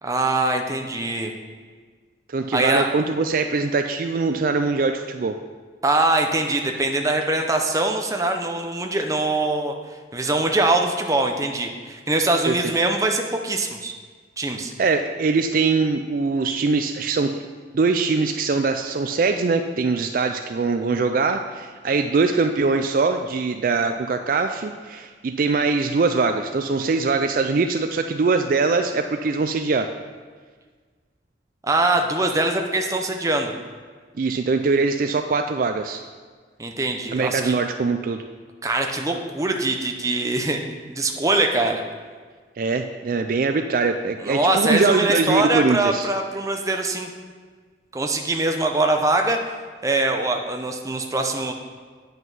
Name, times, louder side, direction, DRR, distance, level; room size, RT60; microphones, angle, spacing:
voice 1, 0.0-1.3 2.5-2.9 5.8-9.7 10.1-13.9 14.4-14.7 31.6-33.5 36.6-37.6 38.6-41.8 44.2-47.1 47.9-49.4 49.8-51.5, right 2 dB, 20° right, 3 dB, 0.7 m, -23 dB
voice 2, 2.3-5.4 12.5-12.6 14.8-17.5 17.7-29.9 34.2-36.0 37.1-38.2 42.6-46.1, right 4 dB, 50° right, 6 dB, 0.4 m, -22 dB
9.4 x 5.8 x 5.4 m, 1.5 s
head